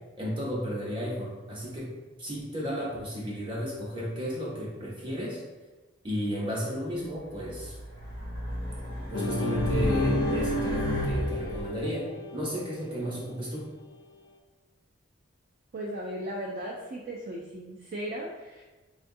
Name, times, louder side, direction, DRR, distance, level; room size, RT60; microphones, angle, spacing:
voice 1, 0.2-1.9 2.2-5.4 6.0-7.7 9.1-12.1 12.3-13.7, equal, 25° right, -5 dB, 0.8 m, -33 dB
Race car auto racing, 7.3-11.6, equal, 65° right, 1.1 m, -31 dB
sound 1, 9.1-13.8, left 3 dB, 75° left, 0.4 m, -35 dB
voice 2, 15.7-18.6, right 1 dB, 45° right, -2 dB, 0.3 m, -36 dB
4.5 x 2.3 x 2.6 m, 1.2 s
head